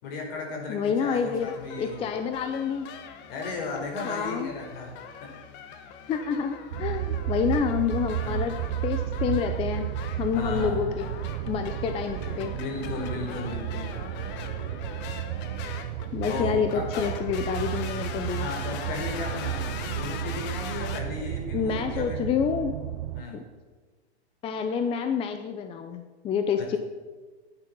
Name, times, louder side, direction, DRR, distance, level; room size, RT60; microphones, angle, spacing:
voice 1, 0.0-2.1 3.3-4.9 5.2-5.3 8.2-8.5 10.3-10.8 12.2-14.0 16.3-17.0 18.3-22.2 23.1-23.4 26.6-26.8, left 3 dB, 55° left, 0 dB, 4.5 m, -35 dB
voice 2, 0.7-1.5 1.8-2.9 4.0-4.5 6.1-8.5 8.8-9.9 10.2-11.1 11.5-12.5 16.1-18.5 21.5-22.7 23.3-23.4 24.4-26.8, left 7 dB, 15° left, 7 dB, 0.6 m, -28 dB
sound 1, 1.1-21.0, left 7 dB, 35° left, 1.3 m, -41 dB
sound 2, 6.7-23.2, right 13 dB, 50° right, 0.7 m, -33 dB
11.0 x 9.7 x 6.1 m, 1.4 s
hypercardioid pair, 130°, 33 cm